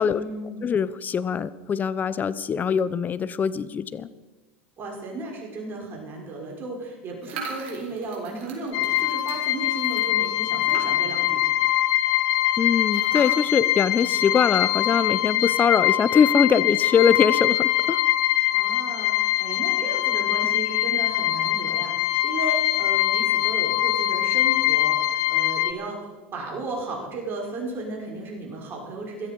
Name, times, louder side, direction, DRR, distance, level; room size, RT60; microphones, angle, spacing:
voice 1, 0.1-0.7 4.8-11.4 18.5-29.3, right 3 dB, 35° right, 0 dB, 5.8 m, -34 dB
voice 2, 0.6-4.1 12.6-18.0, left 7 dB, 25° left, 16 dB, 0.8 m, -22 dB
sound 1, 7.2-11.3 11.6-11.7 11.9-12.0 12.9-14.6, right 5 dB, 65° right, 5.1 m, -41 dB
sound 2, 8.7-25.7, left 14 dB, 55° left, 1.0 m, -23 dB
16.5 x 13.0 x 5.5 m, 1.2 s
hypercardioid pair, 100°, 7 cm